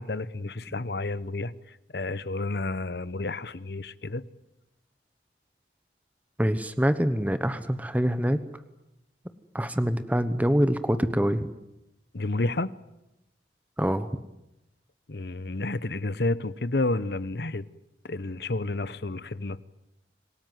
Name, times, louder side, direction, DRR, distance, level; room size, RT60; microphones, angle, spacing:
voice 1, 0.0-4.2 12.1-12.7 15.1-17.7 18.0-19.6, left 2 dB, 65° left, 1.0 m, -30 dB
voice 2, 6.4-8.4 9.5-11.5 13.8-14.1, equal, 10° right, 1.0 m, -25 dB
26.5 x 18.5 x 9.4 m
head